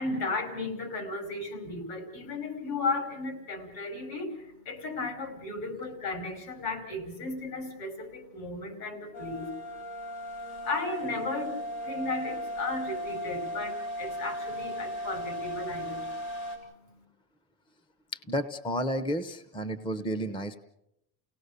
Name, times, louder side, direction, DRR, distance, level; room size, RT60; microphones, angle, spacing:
voice 1, 0.0-17.0, left 3 dB, 70° left, 7 dB, 5.4 m, -35 dB
sound 1, 9.1-16.6, equal, 85° left, 6.7 m, -36 dB
voice 2, 18.3-20.6, equal, 15° left, 12 dB, 0.8 m, -31 dB
30.0 x 18.0 x 6.8 m, 0.84 s
cardioid pair, 160°, 38 cm